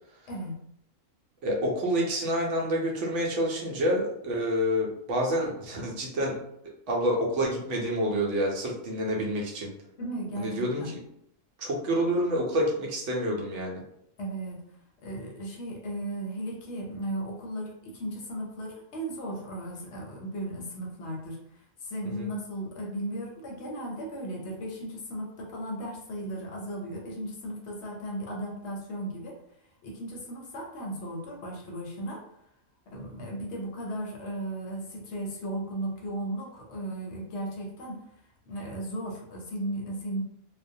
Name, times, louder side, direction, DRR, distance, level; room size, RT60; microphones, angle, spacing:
voice 1, 1.4-6.4 6.9-9.7 10.4-11.0 11.6-13.8 22.0-22.3, equal, 70° right, -2 dB, 0.9 m, -28 dB
voice 2, 10.0-10.9 14.2-14.7 15.0-29.4 29.8-32.2 32.9-38.0 38.5-40.2, right 1 dB, 65° left, -1 dB, 0.8 m, -36 dB
2.3 x 2.1 x 2.6 m, 0.75 s
omnidirectional pair, 1.4 m